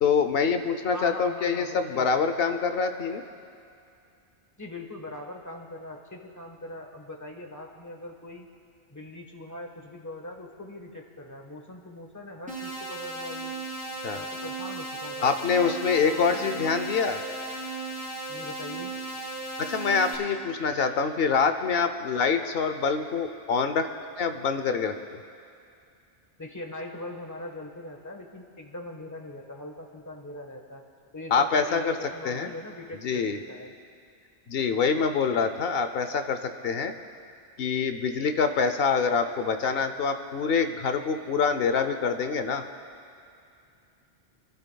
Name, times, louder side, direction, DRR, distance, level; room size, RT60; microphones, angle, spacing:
voice 1, 0.0-3.2 14.0-14.2 15.2-17.2 19.7-23.9 24.2-24.9 31.3-31.9 32.2-32.5 33.0-33.4 34.5-36.9 37.6-42.6, left 5 dB, 60° left, 8 dB, 0.9 m, -25 dB
voice 2, 0.9-2.4 4.6-8.5 8.9-13.5 14.2-17.0 18.3-18.9 26.4-30.8 31.1-33.7, left 1 dB, 15° left, 2 dB, 1.2 m, -41 dB
sound 1, 12.5-20.2, right 2 dB, 5° right, 2.6 m, -36 dB
28.5 x 12.0 x 2.3 m, 2.5 s
omnidirectional pair, 1.2 m